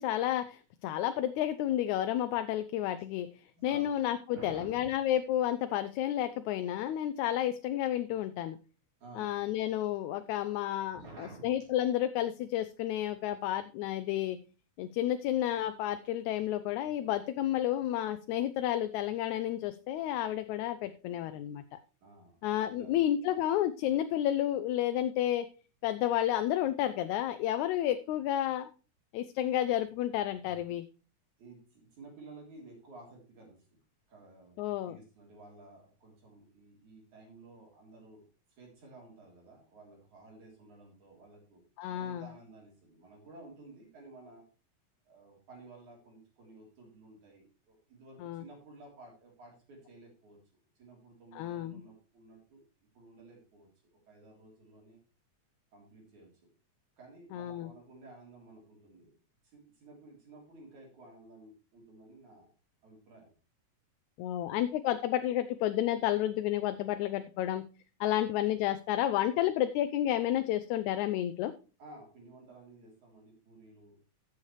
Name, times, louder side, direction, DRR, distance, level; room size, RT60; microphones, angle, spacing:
voice 1, 0.0-3.3 3.6-8.6 9.2-14.4 14.8-21.8 22.4-25.5 25.8-28.7 29.1-30.8 34.6-35.0 41.8-42.2 48.2-48.4 51.3-51.8 57.3-57.7 64.2-67.7 68.0-71.5, left 12 dB, 80° left, 10 dB, 1.9 m, -31 dB
voice 2, 4.3-4.9 9.0-9.5 10.9-11.5 22.0-22.4 22.6-23.0 31.4-33.6 34.1-38.2 38.5-41.6 41.9-44.5 45.1-50.4 50.7-52.6 52.9-55.0 55.7-56.3 57.0-59.1 59.4-62.5 62.8-63.3 71.8-74.0, right 2 dB, 70° right, -1 dB, 4.8 m, -53 dB
14.5 x 7.0 x 3.2 m, 0.34 s
omnidirectional pair, 3.5 m